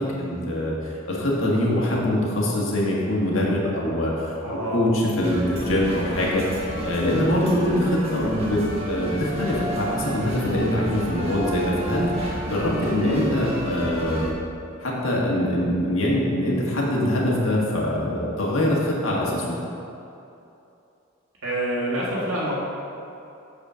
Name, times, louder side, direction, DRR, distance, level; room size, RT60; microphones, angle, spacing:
voice 1, 0.0-14.4 14.8-19.5, left 1 dB, 70° left, -4 dB, 1.6 m, -24 dB
voice 2, 4.4-4.8 21.4-22.5, right 1 dB, 80° right, -7 dB, 1.6 m, -26 dB
sound 1, 5.2-14.3, right 1 dB, 30° right, 1.1 m, -30 dB
8.3 x 4.3 x 6.2 m, 2.7 s
head